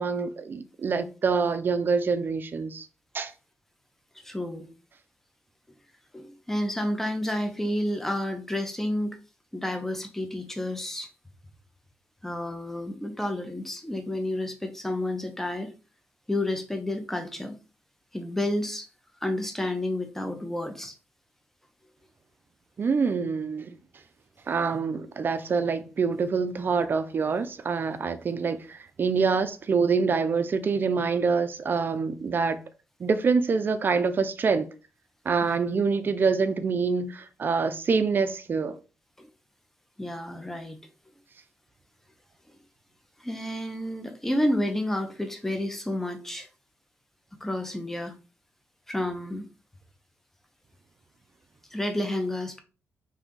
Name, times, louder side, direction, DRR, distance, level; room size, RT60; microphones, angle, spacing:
voice 1, 0.0-2.9 3.1-3.3 22.8-23.8 24.5-32.6 33.0-34.7 35.3-38.7, right 5 dB, 45° right, 0.4 m, -26 dB
voice 2, 4.2-4.7 6.1-9.2 9.5-11.1 12.2-15.7 16.3-17.6 18.1-18.9 19.2-20.9 35.4-35.6 39.2-39.3 40.0-40.8 43.2-46.5 47.4-48.1 48.9-49.5 51.7-52.6, left 1 dB, 5° left, 0.6 m, -30 dB
2.7 x 2.3 x 3.7 m
cardioid pair, 85°, 5 cm